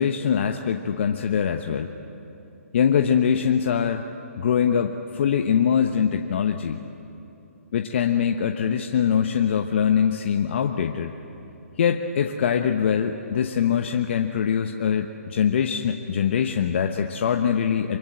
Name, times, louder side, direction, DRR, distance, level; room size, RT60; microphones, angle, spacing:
voice 1, 0.0-1.9 2.7-4.1 4.4-6.8 7.7-11.1 11.8-18.0, left 8 dB, 50° left, 5 dB, 1.1 m, -23 dB
24.0 x 24.0 x 8.0 m, 2.9 s
hypercardioid pair, 140°, 8 cm